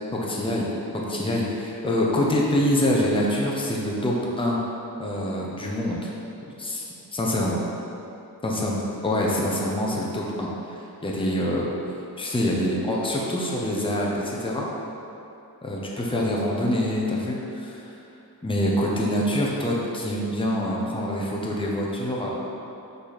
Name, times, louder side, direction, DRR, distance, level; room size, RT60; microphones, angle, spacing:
voice 1, 0.1-4.6 5.0-6.1 6.6-6.8 7.1-7.6 8.4-11.7 12.2-14.7 15.6-17.8 18.4-22.4, left 1 dB, 15° left, -3 dB, 0.8 m, -25 dB
6.1 x 4.0 x 4.1 m, 2.8 s
wide cardioid pair, 100°, 39 cm